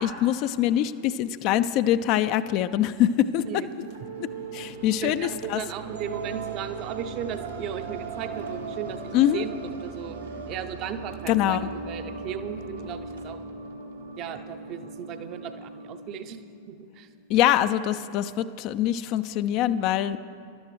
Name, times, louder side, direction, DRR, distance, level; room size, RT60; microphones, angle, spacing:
voice 1, 0.0-3.6 4.2-5.6 9.1-9.4 11.3-11.7 17.3-20.2, left 11 dB, 40° left, 12 dB, 0.4 m, -24 dB
sound 1, 3.7-16.7, right 4 dB, 70° right, 1.0 m, -38 dB
voice 2, 5.0-9.5 9.8-10.2 10.5-11.6 11.9-13.4 14.2-17.1, right 8 dB, 40° right, 8 dB, 0.7 m, -36 dB
21.0 x 12.0 x 3.2 m, 2.5 s
figure-of-eight pair, 90°, 0 cm